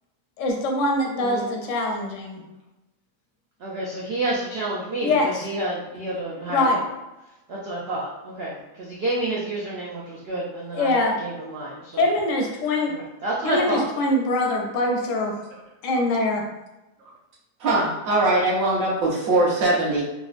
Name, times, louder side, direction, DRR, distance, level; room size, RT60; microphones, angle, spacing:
voice 1, 0.4-2.4 5.0-5.5 6.5-6.8 10.7-11.2 11.9-12.9 13.4-15.3 15.8-16.4, left 2 dB, 70° left, 0 dB, 0.8 m, -23 dB
voice 2, 1.2-1.5 3.6-6.8 7.5-12.1 12.9-13.9, right 2 dB, 85° right, -5 dB, 0.5 m, -29 dB
voice 3, 17.6-20.0, right 2 dB, 60° right, -4 dB, 1.2 m, -21 dB
3.6 x 2.0 x 2.4 m, 1.0 s
omnidirectional pair, 1.7 m